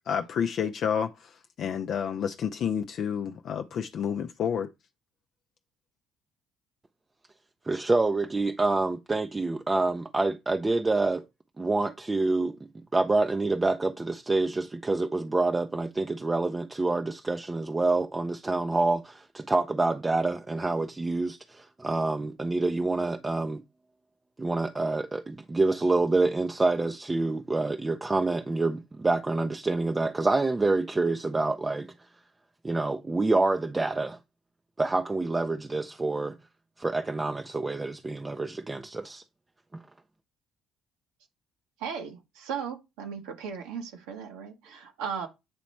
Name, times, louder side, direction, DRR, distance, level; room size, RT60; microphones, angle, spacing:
voice 1, 0.1-4.7, left 7 dB, 55° left, 0.4 m, -30 dB
voice 2, 7.6-11.2 11.6-12.6 12.9-23.6 24.4-31.9 32.6-34.2 34.8-36.4 36.8-39.2, right 3 dB, 20° right, 0.5 m, -27 dB
voice 3, 41.8-45.3, right 7 dB, 75° right, 1.3 m, -36 dB
8.4 x 3.0 x 4.3 m
hypercardioid pair, 55°, 0 cm